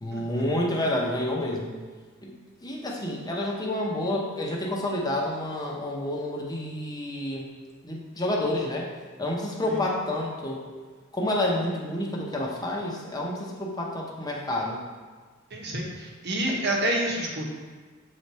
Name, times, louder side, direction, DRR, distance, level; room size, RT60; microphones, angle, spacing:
voice 1, 0.0-1.8 2.2-2.3 2.6-7.5 7.8-8.9 9.2-10.6 11.1-14.8 16.5-16.6, left 1 dB, 20° left, -2 dB, 0.9 m, -29 dB
voice 2, 15.5-17.4, right 1 dB, 60° right, -1 dB, 1.1 m, -28 dB
7.1 x 3.4 x 4.2 m, 1.4 s
head